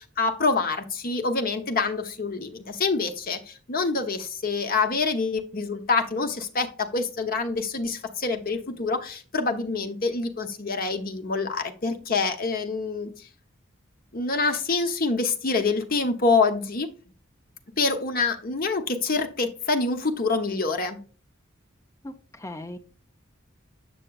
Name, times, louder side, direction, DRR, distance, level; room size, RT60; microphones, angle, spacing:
voice 1, 0.0-13.1 14.1-16.9 17.8-21.0, left 4 dB, 45° left, 6 dB, 0.8 m, -26 dB
voice 2, 22.0-22.8, left 1 dB, 15° left, 8 dB, 0.5 m, -38 dB
7.7 x 6.2 x 2.3 m, 0.38 s
head